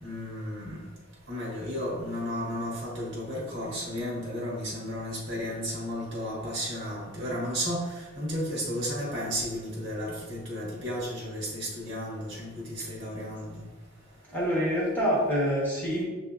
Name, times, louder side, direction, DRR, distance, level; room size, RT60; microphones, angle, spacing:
voice 1, 0.0-0.8 1.3-13.6, equal, 55° right, -5 dB, 1.4 m, -33 dB
voice 2, 14.3-16.0, equal, 10° left, -5 dB, 1.0 m, -26 dB
7.3 x 2.8 x 2.4 m, 1.2 s
head